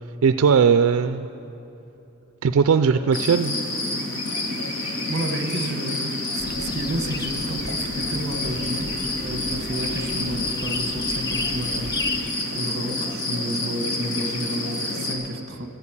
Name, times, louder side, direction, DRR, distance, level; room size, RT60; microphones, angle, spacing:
voice 1, 0.2-1.3 2.4-3.5, right 6 dB, 85° right, 10 dB, 0.4 m, -18 dB
sound 1, 3.1-15.2, left 2 dB, 60° left, 2.1 m, -28 dB
voice 2, 5.1-12.0 12.5-15.7, right 1 dB, 50° right, 6 dB, 1.1 m, -31 dB
sound 2, 6.4-12.3, left 3 dB, 15° left, 0.3 m, -35 dB
13.5 x 8.3 x 8.8 m, 2.8 s
head